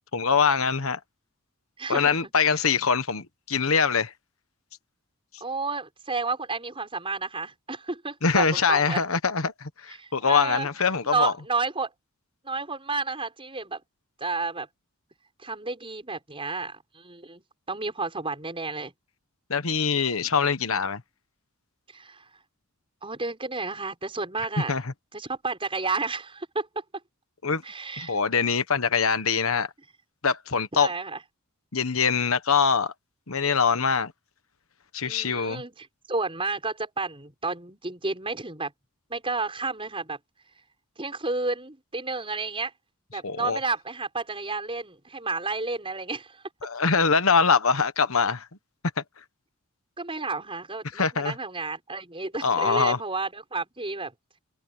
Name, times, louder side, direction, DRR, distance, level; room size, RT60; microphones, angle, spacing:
voice 1, 0.1-1.0 1.9-4.1 8.2-11.3 19.5-21.0 24.7-24.9 27.4-27.6 28.0-29.7 30.2-30.9 31.7-32.9 33.3-34.1 34.9-35.6 43.2-43.6 46.6-48.5 49.0-49.1 50.9-51.4 52.4-53.0, left 5 dB, 70° left, 1.3 m, -23 dB
voice 2, 1.8-2.3 5.4-9.0 9.9-10.7 11.1-11.9 12.4-13.8 14.2-14.7 15.4-18.9 21.9-22.3 23.0-24.7 25.1-26.8 27.6-28.2 30.7-31.2 35.0-38.7 39.1-40.2 41.0-42.7 43.1-46.4 50.0-54.1, right 3 dB, 25° right, 6.0 m, -31 dB
head